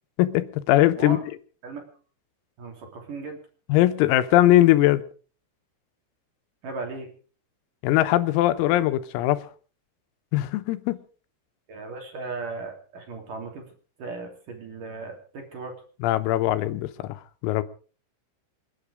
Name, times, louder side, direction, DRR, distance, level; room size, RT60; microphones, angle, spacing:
voice 1, 0.2-1.2 3.7-5.0 7.8-9.4 10.3-11.0 16.0-17.6, left 15 dB, 85° left, 3.7 m, -21 dB
voice 2, 2.6-3.4 6.6-7.1 11.7-13.7 14.0-15.7, right 3 dB, 45° right, 4.2 m, -36 dB
28.0 x 9.4 x 5.0 m
omnidirectional pair, 5.9 m